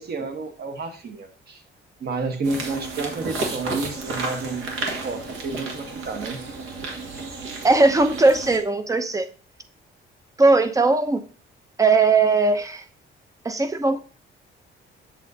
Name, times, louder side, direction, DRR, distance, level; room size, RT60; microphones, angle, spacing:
voice 1, 0.0-1.6 2.0-6.4, right 3 dB, 50° right, 5 dB, 1.2 m, -30 dB
sound 1, 2.4-8.6, right 3 dB, 75° right, 1.8 m, -32 dB
voice 2, 7.6-9.3 10.4-11.2 11.8-12.8 13.4-14.0, right 3 dB, 15° right, 10 dB, 0.6 m, -19 dB
7.6 x 7.3 x 2.7 m, 0.38 s
cardioid pair, 140°, 21 cm